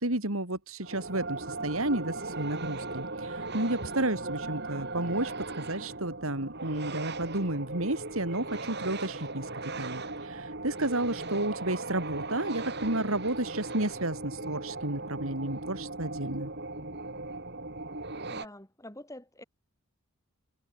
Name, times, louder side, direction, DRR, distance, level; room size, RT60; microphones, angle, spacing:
voice 1, 0.0-9.5 9.8-16.5, right 1 dB, 70° right, 3.8 m, -32 dB
sound 1, 0.8-18.5, right 2 dB, 50° right, 4.4 m, -38 dB
voice 2, 18.3-19.4, left 1 dB, 15° left, 7.8 m, -46 dB
head